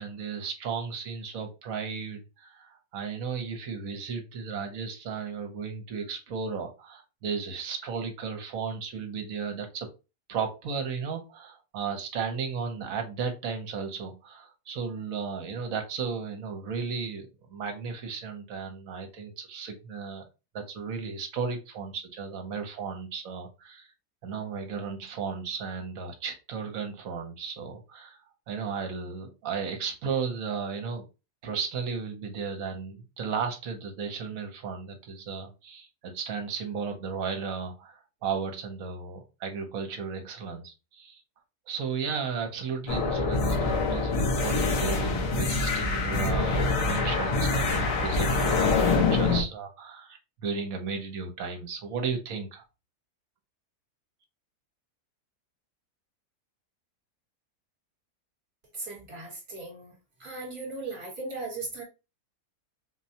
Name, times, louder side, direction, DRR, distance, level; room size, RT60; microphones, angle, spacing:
voice 1, 0.0-9.9 10.3-20.2 20.5-23.9 24.2-28.2 28.5-31.0 31.4-41.2 41.7-52.6, right 5 dB, 65° right, 5 dB, 1.1 m, -34 dB
sound 1, 42.9-49.4, left 3 dB, 65° left, 1.1 m, -25 dB
voice 2, 58.8-59.9 60.2-61.8, right 3 dB, 40° right, -2 dB, 1.4 m, -37 dB
4.0 x 2.2 x 2.7 m, 0.28 s
omnidirectional pair, 1.7 m